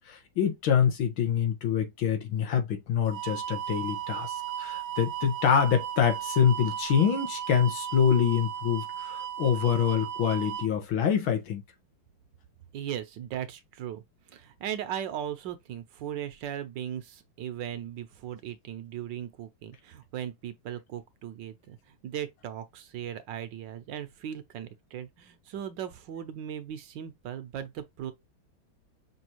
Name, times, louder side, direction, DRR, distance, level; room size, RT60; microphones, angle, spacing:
voice 1, 0.1-11.6, left 8 dB, 90° left, 2.1 m, -26 dB
sound 1, 3.1-10.7, right 10 dB, 90° right, 0.7 m, -36 dB
voice 2, 12.7-14.0 14.3-28.1, right 10 dB, 70° right, 1.4 m, -38 dB
6.2 x 2.8 x 2.9 m
omnidirectional pair, 2.2 m